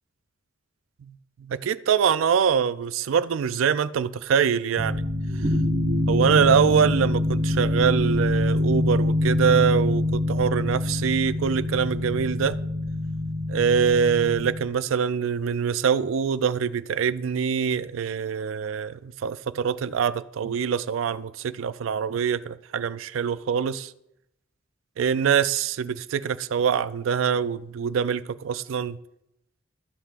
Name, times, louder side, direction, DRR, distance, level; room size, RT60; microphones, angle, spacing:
voice 1, 1.4-5.0 6.1-12.6 13.5-23.9 25.0-29.0, right 7 dB, 90° right, 0.4 m, -24 dB
sound 1, 4.8-14.6, left 2 dB, 60° right, 2.0 m, -25 dB
15.5 x 5.7 x 2.5 m
head